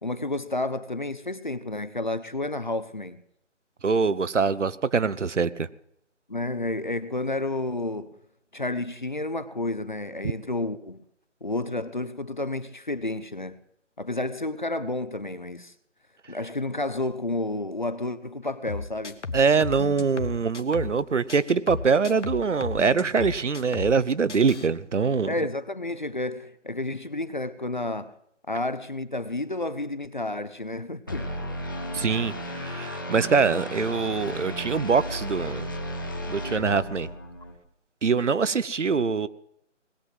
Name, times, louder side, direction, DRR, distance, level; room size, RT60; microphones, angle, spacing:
voice 1, 0.0-3.2 6.3-8.1 8.5-11.0 11.4-13.6 14.0-15.7 16.3-19.4 25.3-28.1 28.5-31.3, left 2 dB, 40° left, 0.6 m, -31 dB
voice 2, 3.8-5.7 19.3-25.3 31.9-35.7 36.3-37.1 38.0-39.3, right 5 dB, 70° right, 0.9 m, -24 dB
sound 1, 18.7-21.0 21.3-24.0 24.3-24.7, left 4 dB, 65° left, 1.4 m, -35 dB
sound 2, 31.1-37.6, equal, 15° left, 1.1 m, -34 dB
20.0 x 7.5 x 7.9 m
figure-of-eight pair, 170°, 37 cm